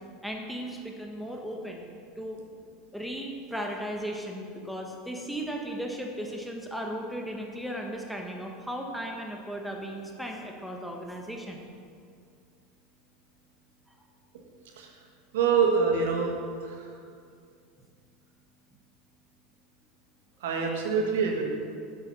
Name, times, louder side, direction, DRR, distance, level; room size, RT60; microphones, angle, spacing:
voice 1, 0.2-1.8 2.2-2.4 2.9-11.6, equal, ahead, 0 dB, 1.4 m, -36 dB
voice 2, 15.3-16.3 16.6-16.8 20.4-21.4, right 5 dB, 75° right, 1 dB, 1.5 m, -25 dB
8.4 x 7.8 x 5.7 m, 2.4 s
hypercardioid pair, 85°, 0 cm